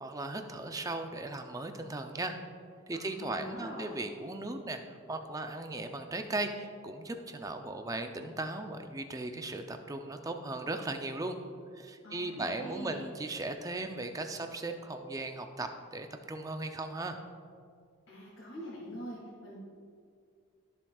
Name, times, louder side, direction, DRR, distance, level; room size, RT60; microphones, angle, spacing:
voice 1, 0.0-2.4 2.9-11.4 11.8-17.2, right 2 dB, 15° right, 6 dB, 0.5 m, -37 dB
voice 2, 2.9-4.0 12.0-13.0 18.1-19.6, equal, 80° left, -8 dB, 2.2 m, -44 dB
14.0 x 7.2 x 2.4 m, 2.2 s
head